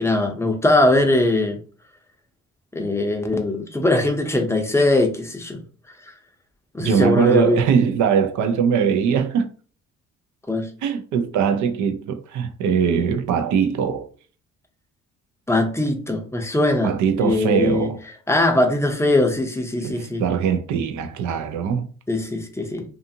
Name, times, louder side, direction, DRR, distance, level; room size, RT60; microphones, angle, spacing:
voice 1, 0.0-1.6 2.7-5.6 6.7-7.6 10.5-10.7 15.5-16.9 17.2-17.9 18.3-20.2 22.1-22.8, left 2 dB, 10° left, 0.5 m, -20 dB
voice 2, 6.8-9.5 10.8-14.1 16.8-18.0 19.8-21.9, right 7 dB, 70° right, 0.5 m, -21 dB
2.6 x 2.4 x 2.7 m
cardioid pair, 90°, 30 cm